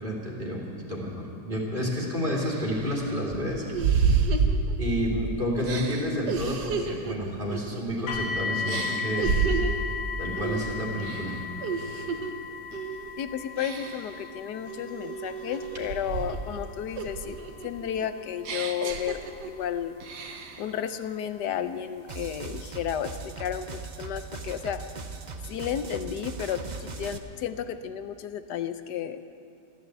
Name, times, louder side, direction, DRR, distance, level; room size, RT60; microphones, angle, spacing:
voice 1, 0.0-3.6 4.8-9.3 10.2-11.3, equal, 25° right, -3 dB, 2.9 m, -30 dB
sound 1, 1.8-1.9 2.4-5.2 5.6-8.3 8.7-9.9 10.4-10.7 11.0-12.3 12.7-13.1 13.6-14.2 14.7-16.6 17.0-19.7 20.0-20.7, right 5 dB, 65° right, 1.6 m, -30 dB
sound 2, 8.1-20.9 21.8-21.9 22.5-22.6, left 6 dB, 55° left, 1.6 m, -37 dB
voice 2, 13.2-17.4 17.6-19.9 20.6-24.8 25.5-29.2, left 9 dB, 70° left, 10 dB, 1.2 m, -32 dB
sound 3, 22.1-27.2, right 4 dB, 80° right, 0.4 m, -39 dB
14.0 x 12.5 x 8.0 m, 2.4 s
omnidirectional pair, 2.0 m